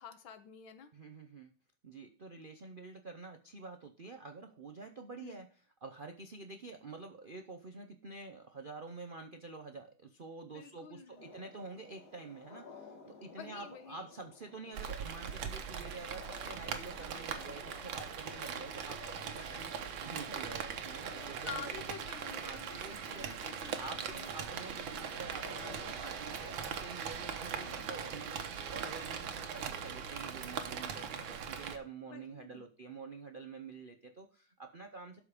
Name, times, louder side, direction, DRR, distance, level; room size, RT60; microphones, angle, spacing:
voice 1, 0.0-0.9 5.2-5.5 10.5-11.2 13.3-14.1 21.4-24.3 27.6-27.9 32.1-32.6, left 8 dB, 90° left, 10 dB, 1.8 m, -49 dB
voice 2, 0.9-1.5 1.8-5.5 5.8-21.7 22.4-23.4 23.8-35.2, right 3 dB, 65° right, 5 dB, 0.5 m, -48 dB
sound 1, 11.1-26.6, left 4 dB, 55° left, 2.0 m, -55 dB
Rain, 14.7-31.8, right 7 dB, 80° right, 1.8 m, -41 dB
sound 2, 16.6-31.5, right 5 dB, 35° right, 1.1 m, -57 dB
12.5 x 5.1 x 4.9 m, 0.40 s
omnidirectional pair, 2.1 m